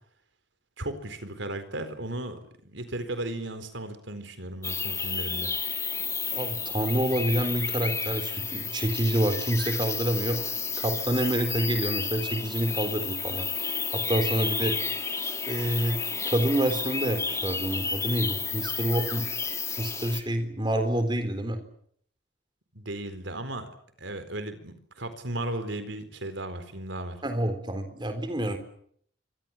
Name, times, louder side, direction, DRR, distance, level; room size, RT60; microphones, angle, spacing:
voice 1, 0.8-2.4 2.6-5.5 22.7-23.7 24.0-27.2, right 1 dB, 70° right, 10 dB, 4.2 m, -35 dB
sound 1, 4.6-20.2, left 5 dB, 15° left, 1.6 m, -31 dB
voice 2, 6.3-10.4 10.8-14.8 15.5-16.0 16.3-19.3 19.8-21.6 27.2-28.6, right 1 dB, 25° right, 8 dB, 3.9 m, -27 dB
27.5 x 25.0 x 7.4 m, 0.65 s
head